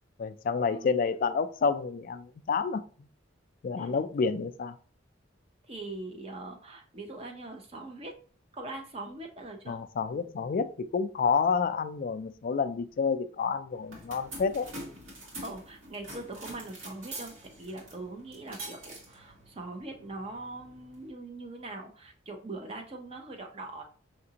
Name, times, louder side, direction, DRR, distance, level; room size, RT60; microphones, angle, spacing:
voice 1, 0.2-2.8 3.6-4.7 9.7-14.7, left 5 dB, 45° left, 11 dB, 0.3 m, -29 dB
voice 2, 5.7-8.1 8.5-9.8 15.4-23.8, right 2 dB, 30° right, 3 dB, 0.7 m, -42 dB
sound 1, 13.7-21.1, right 1 dB, 80° right, 1.7 m, -46 dB
5.7 x 2.5 x 2.8 m, 0.40 s
head